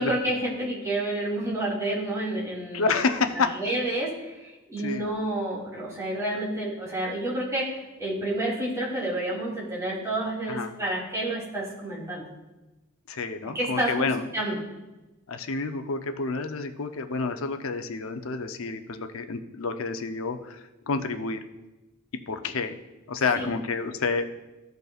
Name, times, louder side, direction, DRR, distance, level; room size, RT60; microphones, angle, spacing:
voice 1, 0.0-2.9 3.5-12.3 13.5-14.6 23.3-23.5, right 1 dB, 15° right, -7 dB, 2.9 m, -29 dB
voice 2, 2.7-3.7 4.8-5.0 10.5-10.7 13.1-14.2 15.3-21.4 22.3-22.8 23.1-24.3, left 4 dB, 85° left, 7 dB, 0.7 m, -29 dB
15.0 x 5.3 x 2.4 m, 1.1 s
head